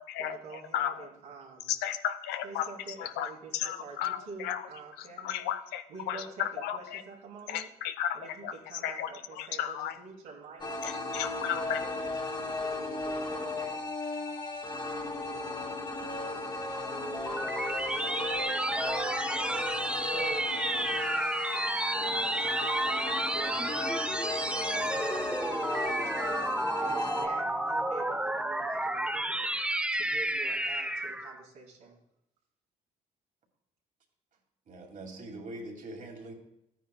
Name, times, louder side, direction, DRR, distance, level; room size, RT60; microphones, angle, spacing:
voice 1, 0.2-1.7 2.4-5.5 5.9-7.7 8.1-10.7 11.3-13.8 17.3-17.6 18.0-24.1 24.7-29.5 29.9-32.0, right 4 dB, 85° right, -6 dB, 3.2 m, -47 dB
voice 2, 1.7-2.7 3.0-4.6 5.2-7.0 7.5-8.2 8.4-8.5 8.8-9.1 9.4-9.9 10.8-11.8, left 10 dB, 85° left, 11 dB, 0.7 m, -33 dB
sound 1, 10.6-27.3, left 2 dB, 30° left, 2.0 m, -36 dB
sound 2, 16.7-31.4, right 1 dB, 5° right, 0.7 m, -31 dB
voice 3, 34.7-36.3, right 1 dB, 55° right, 1 dB, 2.4 m, -43 dB
14.0 x 9.2 x 2.3 m, 0.81 s
supercardioid pair, 60°, 16 cm